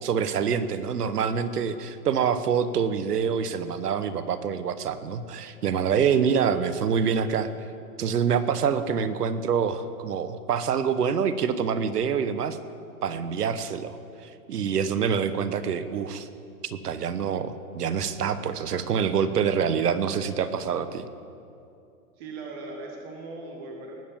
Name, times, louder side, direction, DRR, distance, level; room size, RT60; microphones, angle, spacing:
voice 1, 0.0-7.5 8.0-12.6 13.0-16.3 16.6-21.0, right 7 dB, 85° right, 12 dB, 1.2 m, -26 dB
voice 2, 22.2-23.9, right 3 dB, 15° right, 0 dB, 1.3 m, -39 dB
19.0 x 7.5 x 7.4 m, 2.6 s
hypercardioid pair, 180°, 45 cm